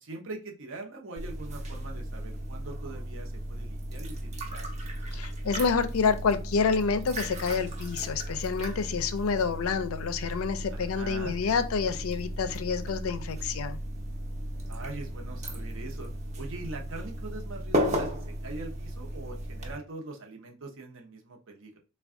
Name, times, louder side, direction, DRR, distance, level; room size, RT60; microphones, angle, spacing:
voice 1, 0.0-4.6 10.7-11.3 14.7-16.1 16.3-21.8, right 3 dB, 60° right, 0.8 m, -42 dB
sound 1, 1.2-19.7, equal, 30° right, 0.6 m, -35 dB
voice 2, 5.1-13.8, left 5 dB, 70° left, 0.4 m, -28 dB
3.4 x 2.2 x 3.6 m
head